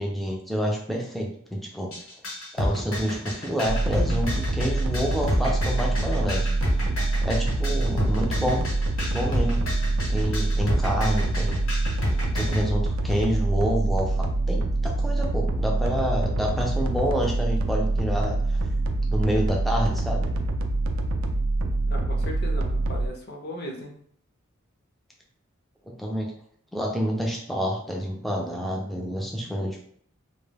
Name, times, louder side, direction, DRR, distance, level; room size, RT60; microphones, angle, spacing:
voice 1, 0.0-1.9 2.5-6.5 7.2-8.6 9.1-9.6 10.1-11.6 12.3-18.6 19.1-20.3 25.9-26.3 26.7-29.8, equal, ahead, -1 dB, 0.3 m, -28 dB
sound 1, 1.9-12.6, equal, 75° left, 0.9 m, -30 dB
sound 2, 3.7-23.1, right 2 dB, 75° right, 0.3 m, -25 dB
voice 2, 21.9-23.9, equal, 50° left, 2 dB, 0.5 m, -37 dB
2.1 x 2.1 x 3.3 m, 0.62 s
head